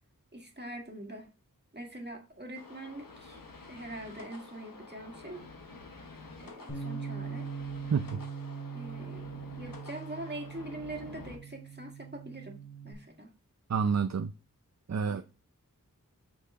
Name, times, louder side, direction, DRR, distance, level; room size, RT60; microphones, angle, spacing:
voice 1, 0.3-1.3 1.7-3.4 3.7-5.4 5.9-6.1 6.4-7.5 8.7-9.3 9.6-13.3 15.1-15.2, right 1 dB, 30° right, 1.8 m, -43 dB
sound 1, 2.6-11.4, left 3 dB, 80° left, 1.2 m, -49 dB
Bass guitar, 6.7-12.9, right 6 dB, 55° left, 3.2 m, -41 dB
voice 2, 13.7-14.3 14.9-15.2, right 6 dB, 55° right, 0.5 m, -28 dB
6.0 x 5.6 x 3.7 m
wide cardioid pair, 45°, 33 cm